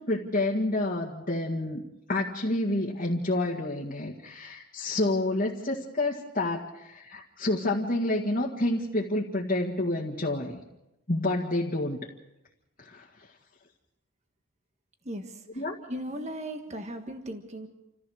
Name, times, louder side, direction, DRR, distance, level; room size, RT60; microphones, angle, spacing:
voice 1, 0.0-1.8 2.1-10.6 11.1-12.0 12.9-13.0 15.6-15.7, left 2 dB, 40° left, -3 dB, 1.9 m, -29 dB
voice 2, 15.0-15.6 15.9-17.7, equal, 30° right, 5 dB, 1.6 m, -37 dB
28.5 x 15.0 x 6.4 m, 0.91 s
head